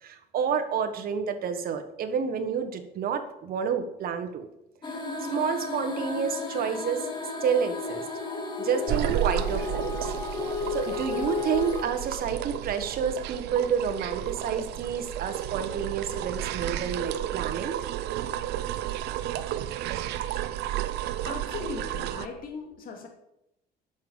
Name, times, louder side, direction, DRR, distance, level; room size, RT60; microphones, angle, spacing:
voice 1, 0.0-4.5 5.3-7.0 7.4-8.0 8.6-10.1 10.7-17.9, right 7 dB, 60° right, 7 dB, 1.5 m, -29 dB
sound 1, 4.8-11.8, left 4 dB, 25° left, 2.1 m, -33 dB
sound 2, 8.9-22.3, right 12 dB, 85° right, 0.7 m, -32 dB
voice 2, 21.2-23.1, left 4 dB, 60° left, 2 dB, 2.5 m, -38 dB
10.5 x 6.8 x 7.2 m, 0.85 s
cardioid pair, 110°, 17 cm